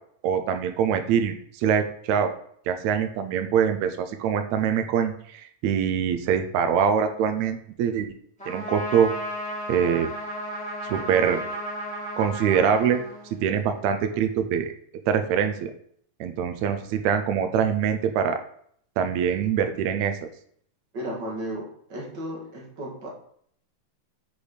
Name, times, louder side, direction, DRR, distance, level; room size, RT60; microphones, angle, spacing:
voice 1, 0.2-2.3 2.7-8.1 8.5-9.1 9.7-10.1 10.8-11.4 12.2-13.0 13.4-14.7 15.1-15.7 16.2-18.4 19.0-20.2, right 8 dB, 75° right, 8 dB, 2.0 m, -24 dB
Trumpet, 8.4-13.7, equal, ahead, 2.2 m, -34 dB
voice 2, 20.9-23.1, equal, 40° right, -2 dB, 2.0 m, -34 dB
6.5 x 5.1 x 5.0 m, 0.64 s
omnidirectional pair, 3.5 m